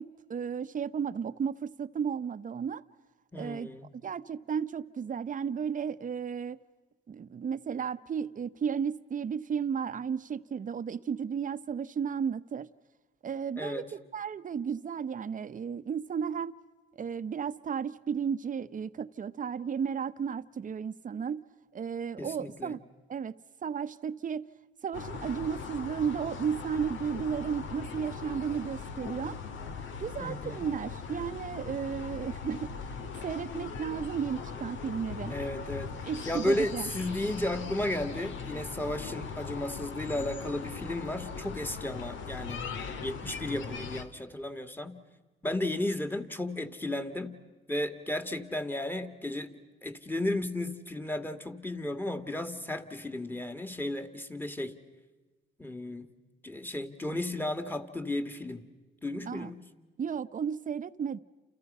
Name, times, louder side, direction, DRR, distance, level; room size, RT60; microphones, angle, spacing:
voice 1, 0.0-2.8 3.3-3.7 4.0-6.6 7.1-12.7 13.2-16.5 17.0-21.4 21.7-22.8 23.1-23.3 23.6-24.5 24.8-29.4 30.0-32.7 33.2-35.3 36.0-36.9 59.3-59.5 60.0-61.2, right 7 dB, 40° right, 0.9 m, -33 dB
voice 2, 3.3-3.9 13.6-13.9 22.2-22.8 30.2-30.7 35.3-35.9 36.3-42.6 43.0-44.9 45.4-47.4 47.7-49.5 49.8-54.7 55.6-56.1 56.4-58.6 59.0-59.6, left 1 dB, 10° left, 2.1 m, -34 dB
sound 1, 24.9-44.0, left 5 dB, 75° left, 1.9 m, -40 dB
30.0 x 29.0 x 5.6 m
cardioid pair, 90°, 20 cm